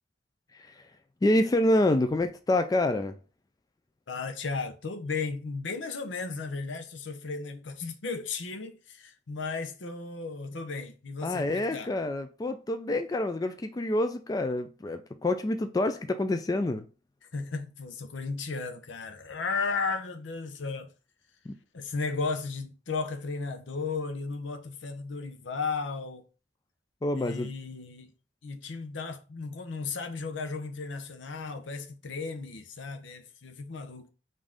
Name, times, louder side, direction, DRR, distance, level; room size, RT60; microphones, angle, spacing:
voice 1, 0.5-0.8 1.2-3.2 11.2-16.8 21.5-21.6 27.0-27.5, left 1 dB, 20° left, 0.3 m, -27 dB
voice 2, 4.1-11.9 17.3-20.9 21.7-26.3 27.1-28.1 28.4-34.1, left 4 dB, 80° left, 0.7 m, -35 dB
5.3 x 2.6 x 3.5 m
head